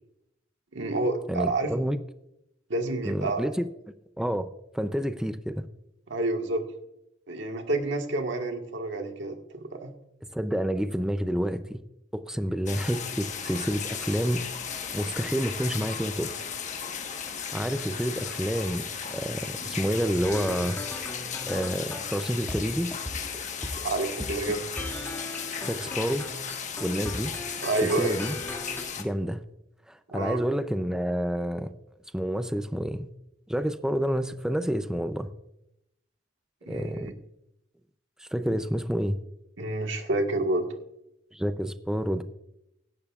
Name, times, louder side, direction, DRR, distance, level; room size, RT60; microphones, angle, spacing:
voice 1, 0.7-1.7 2.7-3.5 6.1-6.7 7.3-9.9 23.8-24.6 27.6-28.2 30.1-30.4 36.7-37.1 39.6-40.7, right 2 dB, 75° right, 1.6 m, -29 dB
voice 2, 1.3-2.0 3.0-3.7 4.2-4.5 4.7-5.7 10.3-11.8 12.1-14.4 14.9-16.3 17.5-20.8 21.5-22.9 25.6-26.3 26.8-27.3 27.8-28.3 29.0-29.4 29.9-31.7 32.1-33.1 33.5-35.3 36.7-37.1 38.2-39.2 41.3-42.2, equal, 5° right, 0.5 m, -29 dB
sound 1, 12.7-29.0, left 7 dB, 40° left, 1.3 m, -36 dB
sound 2, 20.2-22.6 22.9-23.8 24.2-28.8, left 1 dB, 10° left, 2.1 m, -38 dB
17.0 x 12.0 x 2.4 m
head